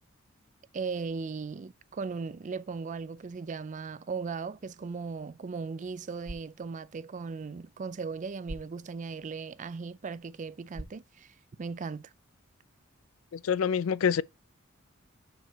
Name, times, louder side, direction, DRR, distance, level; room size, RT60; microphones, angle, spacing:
voice 1, 0.7-12.1, right 5 dB, 35° right, 0.4 m, -37 dB
sound 1, 6.1-12.1, right 1 dB, 70° right, 1.3 m, -50 dB
voice 2, 13.3-14.2, left 7 dB, 80° left, 0.4 m, -26 dB
6.4 x 4.7 x 4.1 m
head